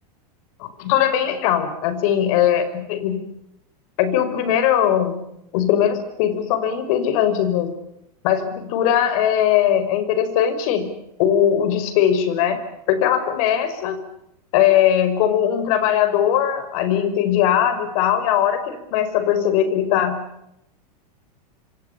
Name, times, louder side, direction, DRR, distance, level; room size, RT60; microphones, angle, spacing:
voice 1, 0.6-3.2 4.0-5.2 5.5-7.7 8.2-10.9 11.2-12.6 12.9-14.0 14.5-20.2, left 10 dB, 60° left, 11 dB, 5.7 m, -20 dB
27.0 x 26.5 x 7.1 m, 0.81 s
supercardioid pair, 130°, 21 cm